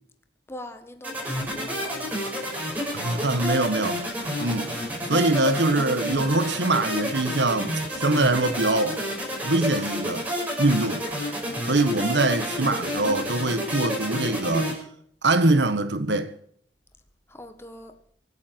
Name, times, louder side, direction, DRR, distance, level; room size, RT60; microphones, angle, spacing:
voice 1, 0.5-1.9 17.3-17.9, left 1 dB, 15° left, 1.4 m, -41 dB
sound 1, 1.0-14.7, equal, 10° right, 5.6 m, -30 dB
voice 2, 2.9-4.0 4.4-4.7 5.1-9.0 9.4-10.2 10.6-11.0 11.7-14.7 15.2-16.3, right 2 dB, 90° right, 1.6 m, -23 dB
24.5 x 9.6 x 4.7 m
head